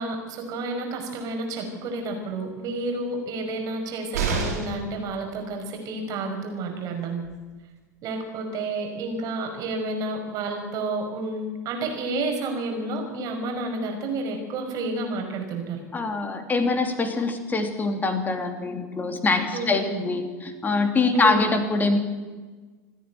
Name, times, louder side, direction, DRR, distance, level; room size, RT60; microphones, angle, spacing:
voice 1, 0.0-7.2 8.0-15.8 19.5-20.0 21.1-21.4, right 2 dB, 40° right, 3 dB, 5.7 m, -30 dB
sound 1, 4.1-4.9 6.8-6.9 7.2-7.3, right 4 dB, 65° right, 6.6 m, -27 dB
voice 2, 15.9-22.0, left 3 dB, 20° left, 6 dB, 3.0 m, -24 dB
27.5 x 10.0 x 9.3 m, 1.3 s
figure-of-eight pair, 80°, 9 cm